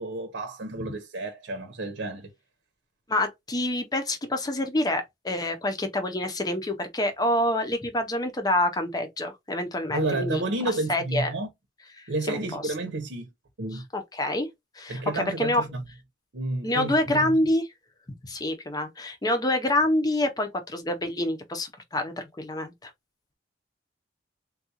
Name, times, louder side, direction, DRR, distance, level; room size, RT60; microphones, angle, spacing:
voice 1, 0.0-2.3 9.9-11.5 12.1-13.3 13.6-13.8 14.9-15.8 16.3-17.4, right 2 dB, 85° right, 0.8 m, -30 dB
voice 2, 3.1-10.4 10.9-11.3 12.0-12.7 13.9-14.5 14.8-15.6 16.6-17.6 18.2-22.9, left 1 dB, 20° left, 0.6 m, -27 dB
3.6 x 2.3 x 2.8 m
head